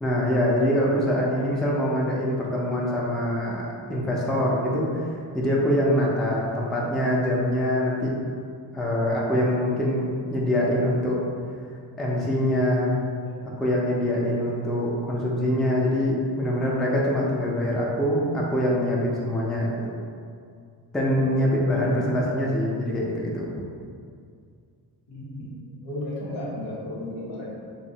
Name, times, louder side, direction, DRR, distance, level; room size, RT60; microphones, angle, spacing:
voice 1, 0.0-5.1 5.3-8.1 8.7-11.2 12.0-13.0 13.6-19.9 20.9-23.5, equal, ahead, -4 dB, 0.4 m, -24 dB
voice 2, 21.3-22.1 25.1-25.5 25.8-27.5, left 1 dB, 75° left, -6 dB, 0.9 m, -34 dB
2.5 x 2.0 x 2.7 m, 2.3 s
cardioid pair, 55°, 43 cm